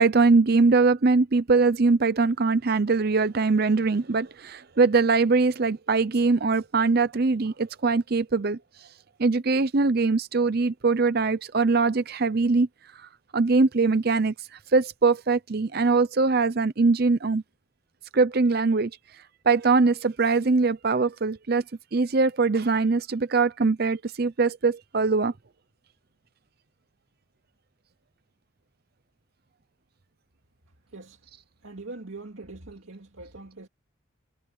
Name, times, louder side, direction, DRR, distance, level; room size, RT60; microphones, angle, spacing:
voice 1, 0.0-8.6 9.2-12.7 13.3-14.3 14.7-17.4 18.1-18.9 19.5-21.6 21.9-25.3, right 4 dB, 50° right, 0.6 m, -22 dB
voice 2, 30.9-31.2 31.6-33.7, right 2 dB, 85° right, 2.4 m, -42 dB
head